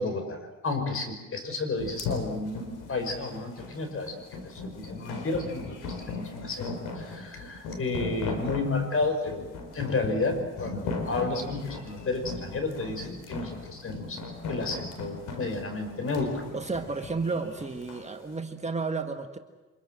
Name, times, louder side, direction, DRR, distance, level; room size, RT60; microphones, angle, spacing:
voice 1, 0.0-9.5 9.7-14.2 14.5-16.5, left 3 dB, 45° left, 6 dB, 5.3 m, -32 dB
sound 1, 1.8-18.1, left 4 dB, 90° left, 4.4 m, -38 dB
voice 2, 16.5-19.4, right 4 dB, 20° right, 5 dB, 1.7 m, -32 dB
25.5 x 22.0 x 7.6 m, 1.2 s
cardioid pair, 90°, 30 cm